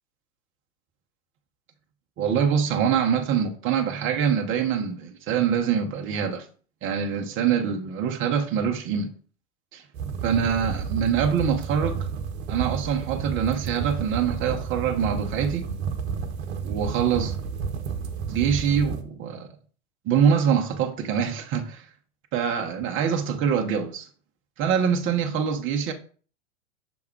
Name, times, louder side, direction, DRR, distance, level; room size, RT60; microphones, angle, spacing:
voice 1, 2.2-6.4 6.8-9.1 9.7-9.8 10.2-12.1 12.5-15.7 16.6-17.3 18.3-19.5 20.0-21.8 22.3-24.1 24.6-25.9, right 7 dB, 30° right, 0.9 m, -24 dB
sound 1, 9.9-19.0, right 6 dB, 55° right, 1.0 m, -31 dB
6.3 x 3.6 x 4.5 m
hypercardioid pair, 100°, 40 cm